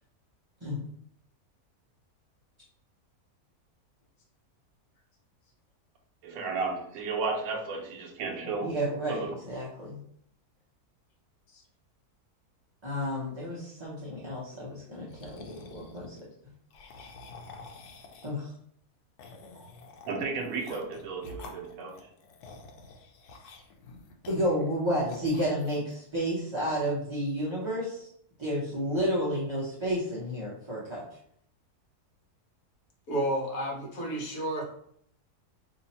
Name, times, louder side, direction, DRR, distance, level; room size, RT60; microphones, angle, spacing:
voice 1, 6.2-8.7 9.1-9.4 19.5-19.7 20.1-22.0, right 4 dB, 70° right, 2 dB, 1.1 m, -33 dB
voice 2, 8.6-10.0 12.8-16.2 18.2-18.5 24.3-28.1 28.4-31.0, equal, 30° right, -8 dB, 0.5 m, -31 dB
sound 1, 15.1-16.2 16.7-18.5 19.2-24.7 25.1-25.9, left 3 dB, 85° left, 1.1 m, -49 dB
voice 3, 33.1-34.6, right 1 dB, 65° left, -1 dB, 1.4 m, -31 dB
2.8 x 2.8 x 4.0 m, 0.67 s
omnidirectional pair, 1.6 m